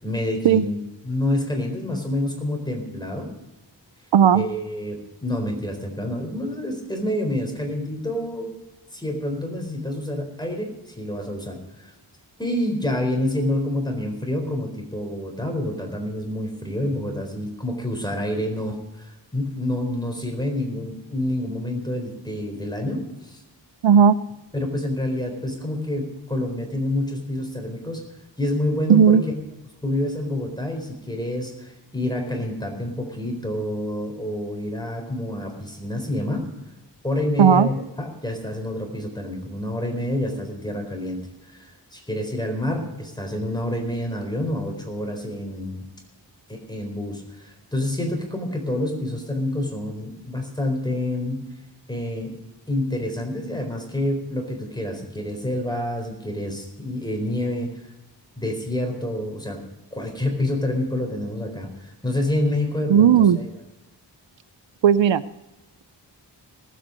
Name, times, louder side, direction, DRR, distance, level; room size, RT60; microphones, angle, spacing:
voice 1, 0.0-3.3 4.3-8.5 8.9-11.9 12.4-23.4 24.5-28.0 28.4-29.3 29.8-36.5 37.0-45.9 46.5-51.4 51.9-52.3 52.7-57.7 58.4-59.6 59.9-63.4, left 1 dB, 10° left, 2 dB, 4.2 m, -28 dB
voice 2, 4.1-4.4 23.8-24.2 28.9-29.2 37.4-37.7 62.9-63.4 64.8-65.2, right 8 dB, 80° right, 16 dB, 0.6 m, -14 dB
19.0 x 8.5 x 5.2 m, 1.0 s
wide cardioid pair, 60°, 44 cm